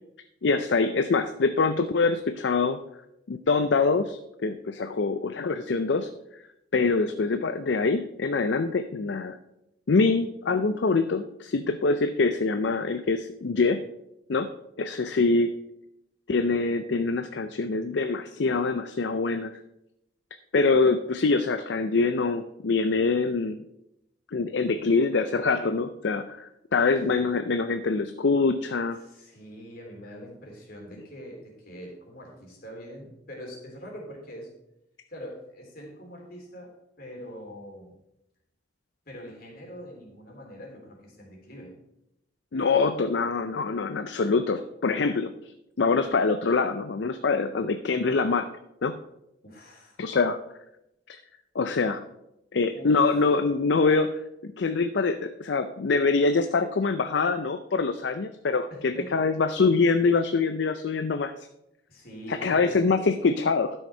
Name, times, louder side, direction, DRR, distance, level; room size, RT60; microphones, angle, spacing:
voice 1, 0.4-2.8 3.3-6.1 6.7-9.4 9.9-13.8 14.3-14.5 14.8-15.5 16.3-19.5 20.5-23.6 24.3-29.0 42.5-45.3 45.8-48.5 48.8-49.0 50.0-50.4 51.1-51.2 51.5-52.0 52.5-61.3 62.3-63.7, left 4 dB, 65° left, 9 dB, 0.5 m, -24 dB
voice 2, 28.9-34.5 35.1-37.9 39.0-41.7 49.4-50.0 52.7-53.1 58.7-59.3 61.9-62.7, equal, 50° left, -1 dB, 3.2 m, -43 dB
12.0 x 6.4 x 4.3 m, 0.85 s
head